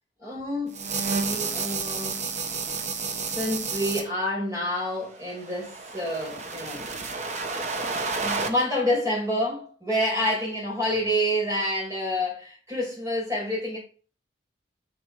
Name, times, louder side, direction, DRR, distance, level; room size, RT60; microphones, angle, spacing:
voice 1, 0.2-0.8 1.1-2.3 3.3-6.8 8.2-13.8, equal, 15° right, 5.5 m, -28 dB
sound 1, 0.7-4.0 5.1-8.5, right 4 dB, 40° right, 1.2 m, -31 dB
7.3 x 7.0 x 4.9 m
head